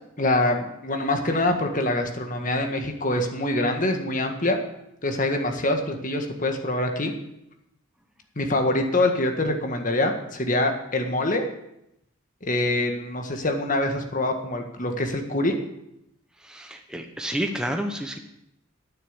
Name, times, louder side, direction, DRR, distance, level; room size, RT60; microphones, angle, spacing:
voice 1, 0.2-4.6 5.0-7.1 8.3-11.4 12.4-15.6, left 1 dB, 40° left, 4 dB, 1.7 m, -25 dB
voice 2, 16.4-18.2, right 1 dB, 5° right, 4 dB, 0.9 m, -30 dB
10.0 x 9.0 x 8.0 m, 0.82 s
head